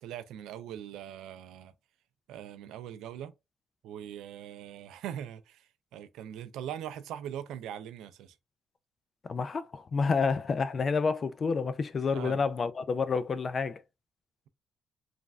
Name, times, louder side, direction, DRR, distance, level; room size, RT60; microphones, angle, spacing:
voice 1, 0.0-1.7 2.3-3.3 3.8-8.4 12.1-12.4, right 10 dB, 90° right, 0.4 m, -41 dB
voice 2, 9.3-13.8, left 5 dB, 40° left, 0.4 m, -29 dB
3.1 x 2.5 x 2.3 m
cardioid pair, 90°, 0 cm